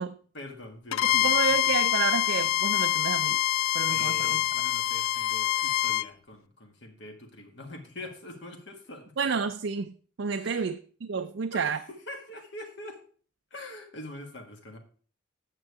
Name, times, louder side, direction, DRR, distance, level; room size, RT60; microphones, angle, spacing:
voice 1, 0.3-1.7 3.9-9.1 10.3-10.7 11.2-13.0 13.5-14.8, left 1 dB, 60° left, 1.7 m, -44 dB
Bowed string instrument, 0.9-6.1, left 13 dB, 90° left, 0.4 m, -25 dB
voice 2, 1.1-3.4 3.7-4.4 9.2-11.8, right 5 dB, 60° right, 0.4 m, -30 dB
8.8 x 6.9 x 4.7 m
head